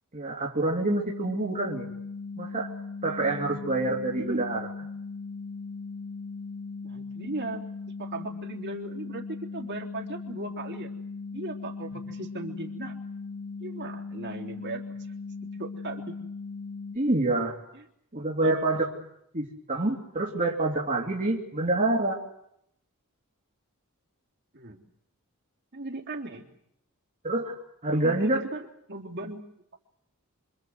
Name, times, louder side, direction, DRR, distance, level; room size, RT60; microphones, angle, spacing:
voice 1, 0.1-1.9 2.4-2.7 3.0-4.6 16.9-17.6 18.1-19.0 19.3-22.2 27.2-27.6 27.8-28.4, right 2 dB, 35° right, -3 dB, 2.8 m, -27 dB
sound 1, 0.8-17.0, left 4 dB, 40° left, 3.5 m, -38 dB
voice 2, 4.2-4.5 6.8-7.6 8.0-10.9 11.3-12.9 13.6-15.0 15.6-16.2 17.7-17.8 18.4-18.5 24.5-24.8 25.7-26.5 27.9-29.4, right 2 dB, 55° right, 1 dB, 3.7 m, -37 dB
26.5 x 25.5 x 8.0 m, 0.75 s
head